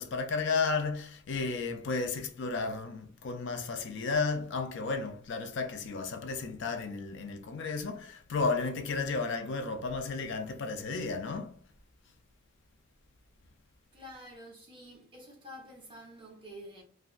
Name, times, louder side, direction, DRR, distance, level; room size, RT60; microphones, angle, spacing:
voice 1, 0.0-11.6, left 4 dB, 55° left, 0.4 m, -33 dB
voice 2, 13.9-16.8, equal, 20° right, 0.8 m, -48 dB
3.7 x 2.2 x 2.4 m
head